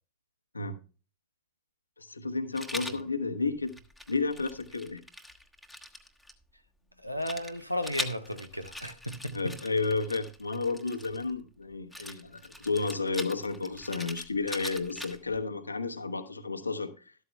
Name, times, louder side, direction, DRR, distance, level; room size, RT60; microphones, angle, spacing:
voice 1, 2.0-3.7 4.1-5.0 9.3-17.1, left 4 dB, 80° left, 1.0 m, -32 dB
Rattle, 2.5-3.0 3.7-6.3 7.2-11.3 11.9-15.4, left 1 dB, ahead, 1.3 m, -42 dB
voice 2, 7.0-9.5, left 1 dB, 90° right, 0.8 m, -35 dB
13.0 x 12.5 x 2.2 m
figure-of-eight pair, 90°, 0 cm